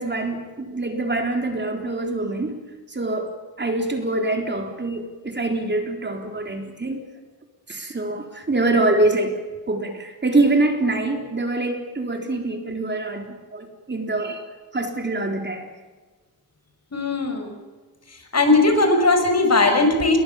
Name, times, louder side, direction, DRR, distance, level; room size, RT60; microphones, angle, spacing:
voice 1, 0.0-2.6 2.9-3.3 3.6-7.0 7.7-9.4 9.7-14.4 14.7-15.6, right 2 dB, 30° right, 3 dB, 3.9 m, -24 dB
voice 2, 16.9-17.5 18.1-20.2, left 2 dB, 45° left, 5 dB, 6.3 m, -18 dB
29.5 x 22.5 x 7.2 m, 1.3 s
wide cardioid pair, 125°, 36 cm